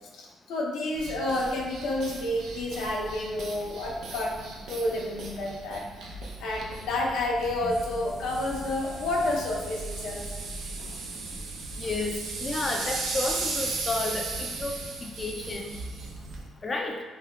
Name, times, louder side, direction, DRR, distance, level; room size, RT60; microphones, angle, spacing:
voice 1, 0.2-5.9 6.4-10.3, left 1 dB, 85° left, -2 dB, 0.5 m, -30 dB
sound 1, 0.9-16.5, right 3 dB, 80° right, 0.5 m, -37 dB
voice 2, 11.8-15.7 16.6-16.9, left 2 dB, 30° left, 2 dB, 0.3 m, -32 dB
3.3 x 2.7 x 2.2 m, 1.3 s
cardioid pair, 90°, 0 cm